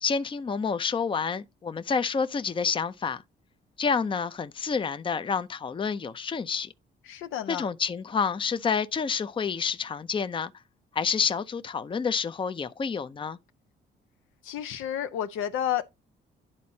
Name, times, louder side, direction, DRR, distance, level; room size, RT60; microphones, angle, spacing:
voice 1, 0.0-3.2 3.8-6.7 7.5-10.5 10.9-13.4, left 6 dB, 25° left, 0.5 m, -28 dB
voice 2, 7.1-7.7 14.4-15.8, left 10 dB, 85° left, 0.8 m, -30 dB
11.0 x 4.2 x 2.7 m
cardioid pair, 90°, 20 cm